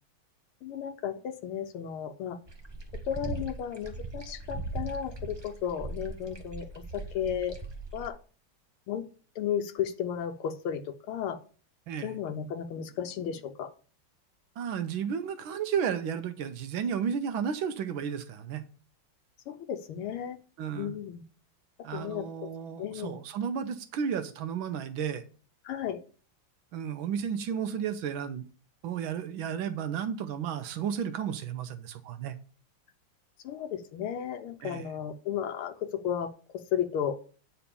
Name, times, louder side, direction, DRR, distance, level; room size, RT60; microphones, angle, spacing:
voice 1, 0.6-2.4 3.1-7.6 7.9-8.2 8.9-9.0 9.4-11.4 12.0-13.7 19.5-20.4 20.7-21.2 21.9-22.5 22.8-23.2 25.6-26.0 33.4-37.2, left 9 dB, 80° left, 1.6 m, -34 dB
sound 1, 2.5-8.1, right 2 dB, 25° right, 0.5 m, -39 dB
voice 2, 11.9-12.2 14.6-18.6 20.6-20.9 21.8-25.2 26.7-28.4 28.8-32.4 34.6-34.9, right 7 dB, 75° right, 1.5 m, -33 dB
9.0 x 4.3 x 6.8 m
omnidirectional pair, 2.4 m